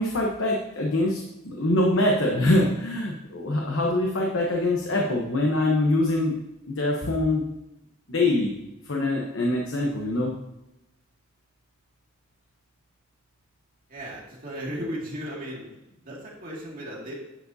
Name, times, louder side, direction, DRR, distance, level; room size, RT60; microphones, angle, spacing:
voice 1, 0.0-6.4 6.7-7.4 8.1-8.6 8.8-10.3, left 1 dB, 80° left, 0 dB, 1.0 m, -24 dB
voice 2, 13.9-15.8 16.0-17.1, equal, 45° right, -4 dB, 2.2 m, -35 dB
10.0 x 7.1 x 2.7 m, 0.93 s
head